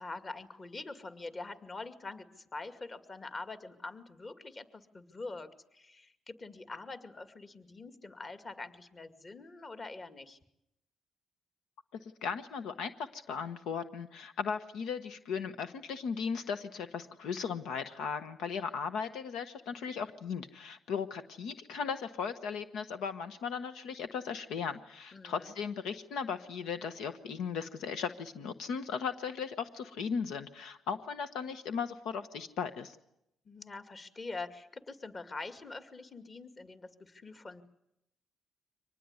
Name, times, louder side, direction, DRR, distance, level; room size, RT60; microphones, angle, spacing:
voice 1, 0.0-10.4 25.1-25.5 33.5-37.6, left 3 dB, 35° left, 9 dB, 2.2 m, -44 dB
voice 2, 12.0-33.0, left 6 dB, 85° left, 9 dB, 1.2 m, -37 dB
24.5 x 19.5 x 9.7 m, 0.82 s
cardioid pair, 90°, 0 cm